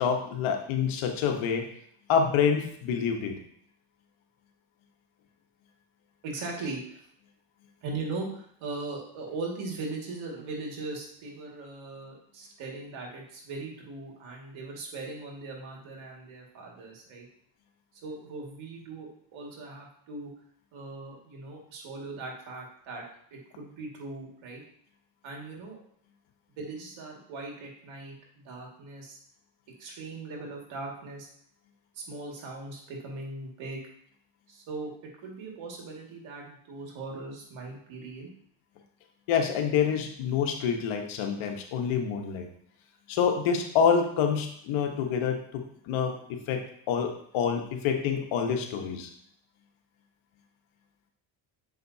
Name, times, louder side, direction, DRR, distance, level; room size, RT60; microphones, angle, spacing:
voice 1, 0.0-1.6 2.1-3.4 39.3-42.5 43.1-49.1, left 7 dB, 85° left, 4 dB, 1.2 m, -27 dB
voice 2, 6.2-7.0 7.8-17.3 18.0-20.3 20.7-23.0 23.3-24.6 25.2-25.8 26.6-29.2 29.8-31.3 31.9-33.8 34.5-34.9 35.2-38.3, right 3 dB, 80° right, -1 dB, 2.1 m, -39 dB
7.3 x 5.1 x 2.7 m, 0.66 s
cardioid pair, 100°, 47 cm